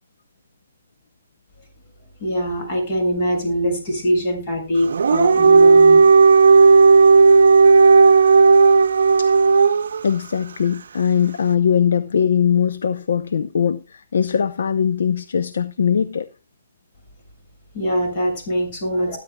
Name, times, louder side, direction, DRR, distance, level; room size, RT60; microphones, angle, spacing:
voice 1, 2.2-6.1 17.7-19.2, equal, 45° left, 7.0 m, -22 dB
Dog, 4.8-10.0, right 4 dB, 70° right, 0.7 m, -12 dB
voice 2, 10.0-16.3, left 7 dB, 70° left, 0.7 m, -20 dB
20.5 x 10.0 x 2.3 m
hypercardioid pair, 135°, 0 cm